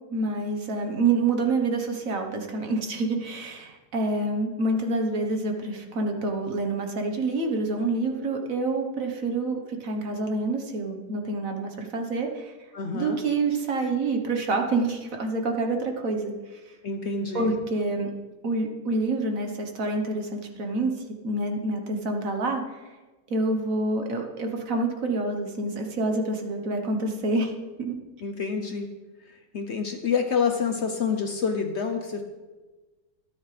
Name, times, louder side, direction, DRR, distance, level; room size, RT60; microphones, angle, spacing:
voice 1, 0.1-12.5 12.9-16.3 17.3-18.1 18.4-20.9 21.2-22.6 23.3-27.5 27.8-27.9, right 2 dB, 60° right, 3 dB, 1.6 m, -27 dB
voice 2, 12.7-13.2 16.8-17.5 28.2-28.9 29.5-32.2, left 5 dB, 55° left, 5 dB, 0.9 m, -27 dB
13.5 x 11.5 x 3.4 m, 1.2 s
omnidirectional pair, 1.7 m